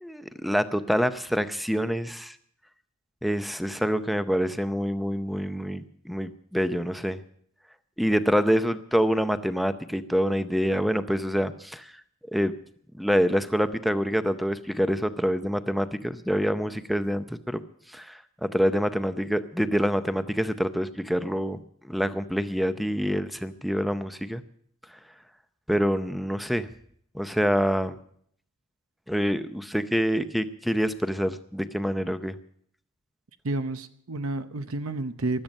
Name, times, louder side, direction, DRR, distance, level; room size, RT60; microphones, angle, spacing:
voice 1, 0.0-2.4 3.2-7.2 8.0-11.9 12.3-12.5 12.9-17.6 17.9-21.6 21.8-24.4 25.7-26.7 27.1-28.0 29.1-32.4, equal, ahead, 11 dB, 0.6 m, -26 dB
voice 2, 33.4-35.4, right 2 dB, 70° right, 10 dB, 0.8 m, -30 dB
16.0 x 12.0 x 5.3 m, 0.65 s
head